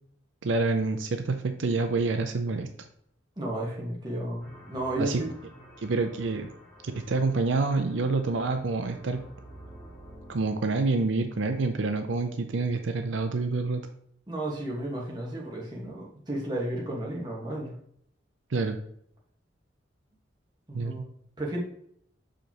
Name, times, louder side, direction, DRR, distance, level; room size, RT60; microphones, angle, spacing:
voice 1, 0.4-2.7 5.0-5.2 5.8-6.5 6.8-9.2 10.3-13.8 18.5-18.8 20.7-20.9, right 3 dB, 75° right, 6 dB, 0.6 m, -27 dB
voice 2, 3.4-5.3 14.3-17.7 20.7-21.0 21.4-21.6, right 1 dB, 20° right, -3 dB, 1.5 m, -33 dB
sound 1, 4.4-10.7, equal, 5° left, 1.8 m, -50 dB
6.4 x 5.0 x 2.9 m, 0.68 s
head